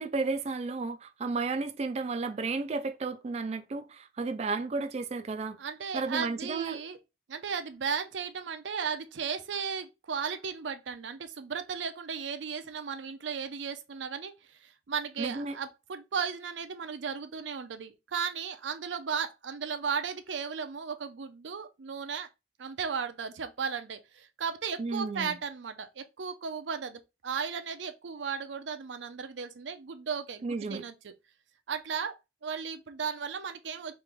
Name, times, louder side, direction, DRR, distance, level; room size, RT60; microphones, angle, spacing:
voice 1, 0.0-5.6 5.9-6.8 15.2-15.5 24.8-25.4 30.4-30.8, right 4 dB, 35° right, 0.4 m, -33 dB
voice 2, 5.6-7.0 7.3-22.3 22.6-31.1 31.7-32.1 32.4-33.9, right 6 dB, 85° right, 0.5 m, -35 dB
3.1 x 2.9 x 3.5 m
head